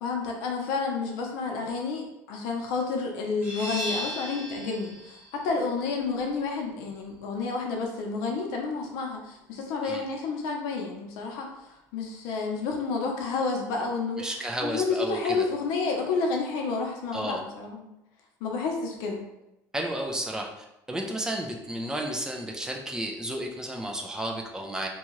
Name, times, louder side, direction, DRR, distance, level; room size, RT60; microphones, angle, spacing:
voice 1, 0.0-11.5 11.9-17.9 18.4-19.2, left 4 dB, 80° left, 1 dB, 0.6 m, -30 dB
sound 1, 3.4-8.8, equal, 25° right, 0.9 m, -39 dB
voice 2, 14.2-15.5 17.1-17.4 19.7-24.9, right 1 dB, 10° right, 1 dB, 0.3 m, -32 dB
2.7 x 2.3 x 3.0 m, 0.91 s
cardioid pair, 150°, 7 cm